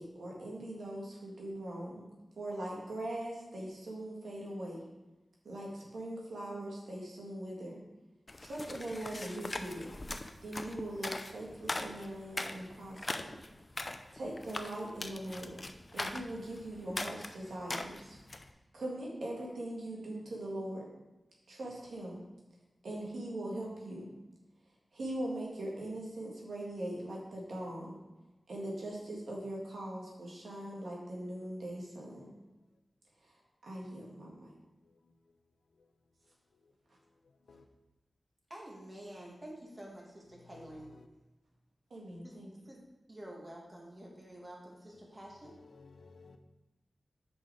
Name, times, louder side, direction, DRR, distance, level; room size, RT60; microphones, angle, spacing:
voice 1, 0.0-2.1 2.4-4.8 5.4-7.8 8.4-9.9 10.4-13.4 14.1-15.6 15.9-18.2 18.7-20.8 21.5-22.2 22.8-24.1 24.9-28.0 28.5-32.3 33.2-33.3 33.6-34.5 41.9-42.7, right 1 dB, 90° right, 1.9 m, -41 dB
sound 1, 8.3-18.5, left 2 dB, 35° left, 0.5 m, -41 dB
voice 2, 38.5-40.9 42.2-42.3 42.7-42.8 43.1-45.6, right 1 dB, 30° right, 2.0 m, -49 dB
voice 3, 40.5-41.1 45.1-45.2 45.4-46.4, left 4 dB, 90° left, 0.6 m, -56 dB
6.6 x 5.4 x 4.7 m
wide cardioid pair, 75°, 0 cm